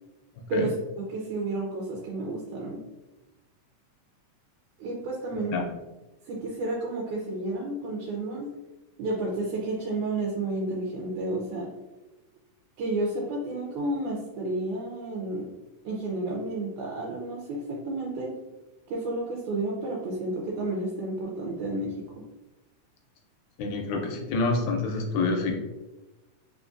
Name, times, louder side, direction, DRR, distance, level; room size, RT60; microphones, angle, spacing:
voice 1, 0.5-2.8 4.8-5.6 6.3-8.5 9.0-11.7 12.8-15.5 15.8-18.3 18.9-22.1, right 2 dB, 80° right, -3 dB, 2.0 m, -31 dB
voice 2, 5.3-5.6 23.6-25.6, left 3 dB, 75° left, 2 dB, 1.8 m, -27 dB
4.5 x 3.6 x 2.5 m, 1.1 s
omnidirectional pair, 3.7 m